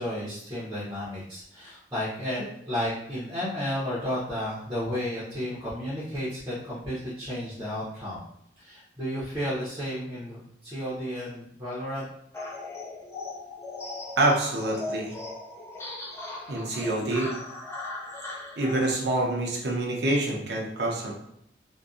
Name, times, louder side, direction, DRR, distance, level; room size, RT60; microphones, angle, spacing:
voice 1, 0.0-8.2 8.6-12.0, equal, 15° right, -9 dB, 0.7 m, -32 dB
sound 1, 12.3-18.9, left 2 dB, 15° left, 0.4 m, -38 dB
voice 2, 14.2-15.2 16.5-17.3 18.6-21.1, right 2 dB, 65° right, -1 dB, 0.6 m, -26 dB
2.6 x 2.2 x 2.3 m, 0.76 s
head